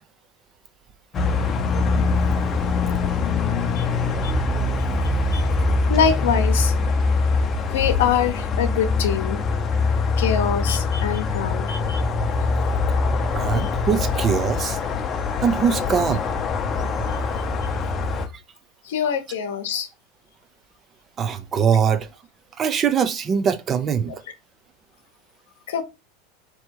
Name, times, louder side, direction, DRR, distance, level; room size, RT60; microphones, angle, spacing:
sound 1, 1.1-18.3, left 4 dB, 30° left, 0.7 m, -23 dB
voice 1, 5.9-6.7 7.7-9.4 10.2-12.0 13.5-13.7 17.1-17.2 18.8-19.9 24.1-24.2 25.7-25.8, left 7 dB, 80° left, 0.8 m, -24 dB
voice 2, 13.3-14.8 15.4-16.3 21.2-22.1 22.6-24.1, right 7 dB, 30° right, 0.6 m, -22 dB
3.3 x 3.0 x 4.7 m
hypercardioid pair, 110°, 0 cm